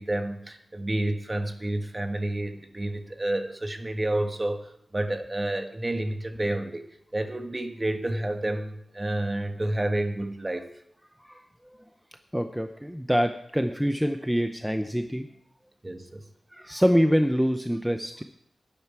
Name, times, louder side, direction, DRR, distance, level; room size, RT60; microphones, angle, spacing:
voice 1, 0.0-6.8 7.1-10.7 15.8-16.2, right 1 dB, 25° right, 6 dB, 1.4 m, -30 dB
voice 2, 11.2-11.8 12.3-15.3 16.5-18.2, equal, 5° right, 7 dB, 0.6 m, -25 dB
11.5 x 11.0 x 4.7 m, 0.70 s
wide cardioid pair, 80°, 0 cm